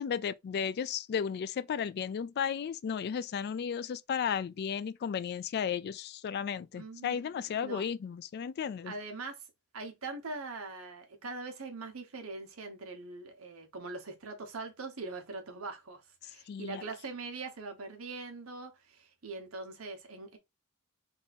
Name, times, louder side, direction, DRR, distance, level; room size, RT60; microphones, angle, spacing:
voice 1, 0.0-8.9 16.5-16.8, left 7 dB, 50° left, 0.3 m, -34 dB
voice 2, 6.8-7.9 8.8-9.4 9.7-20.4, right 3 dB, 70° right, 1.1 m, -42 dB
3.6 x 2.6 x 4.1 m
head